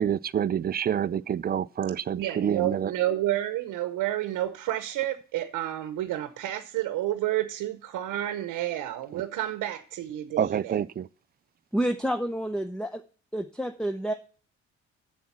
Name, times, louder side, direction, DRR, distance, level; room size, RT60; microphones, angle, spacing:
voice 1, 0.0-2.9 9.1-9.2 10.4-11.1, right 9 dB, 30° right, 0.4 m, -27 dB
voice 2, 2.1-10.8, right 13 dB, 90° right, 0.9 m, -30 dB
voice 3, 11.7-13.0 13.3-14.1, right 1 dB, ahead, 0.7 m, -29 dB
7.5 x 7.1 x 5.9 m
cardioid pair, 90°, 30 cm